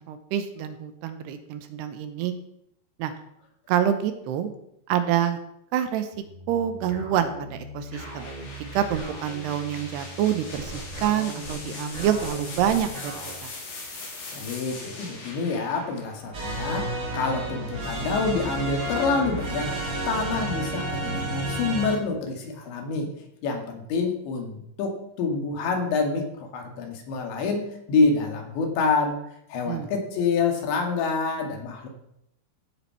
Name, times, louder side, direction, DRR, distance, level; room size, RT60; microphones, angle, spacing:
voice 1, 0.0-2.3 3.0-3.1 3.7-4.5 4.9-5.4 5.7-6.1 6.5-8.3 8.7-13.1 13.4-13.5 29.7-29.9, right 10 dB, 75° right, 9 dB, 2.9 m, -26 dB
sound 1, 6.1-13.3, equal, 50° right, 5.2 m, -39 dB
sound 2, 7.9-17.7, left 3 dB, 50° left, 4.4 m, -41 dB
voice 2, 14.3-19.7 20.1-23.1 23.4-29.2 29.5-31.9, left 4 dB, 80° left, 3 dB, 4.4 m, -27 dB
sound 3, 16.3-22.0, right 1 dB, 30° right, 1.7 m, -30 dB
16.5 x 7.7 x 5.8 m, 0.76 s
omnidirectional pair, 5.1 m